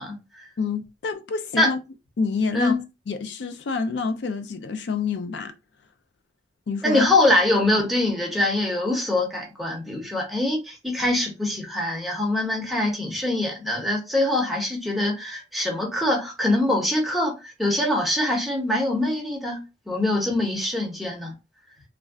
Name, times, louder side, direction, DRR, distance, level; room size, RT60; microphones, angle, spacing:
voice 1, 0.0-0.5 1.6-1.7 2.5-2.8 6.8-21.3, left 1 dB, ahead, 0.8 m, -24 dB
voice 2, 0.6-1.8 2.2-2.7 3.1-5.5 6.7-7.1, left 4 dB, 70° left, 0.4 m, -27 dB
2.4 x 2.1 x 3.5 m
head